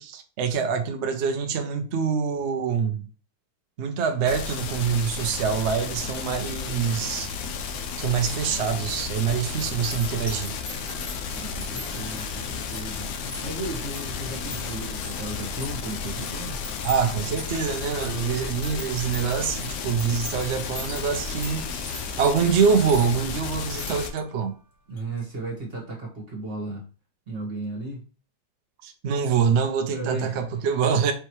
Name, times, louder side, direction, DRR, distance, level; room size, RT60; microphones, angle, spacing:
voice 1, 0.0-3.0 3.8-7.3 8.0-10.5 16.8-21.9 22.2-24.5 28.8-31.1, right 6 dB, 75° right, 0.6 m, -25 dB
sound 1, 4.3-24.1, left 5 dB, 70° left, 1.1 m, -33 dB
sound 2, 8.0-24.0, left 7 dB, 85° left, 1.6 m, -44 dB
sound 3, 8.3-8.5 8.7-24.5 24.9-25.2, left 1 dB, 35° left, 1.0 m, -43 dB
voice 2, 11.3-16.6 24.9-26.8 27.3-28.0 29.9-30.7, right 2 dB, 35° right, 1.3 m, -35 dB
4.6 x 3.2 x 3.0 m
omnidirectional pair, 2.0 m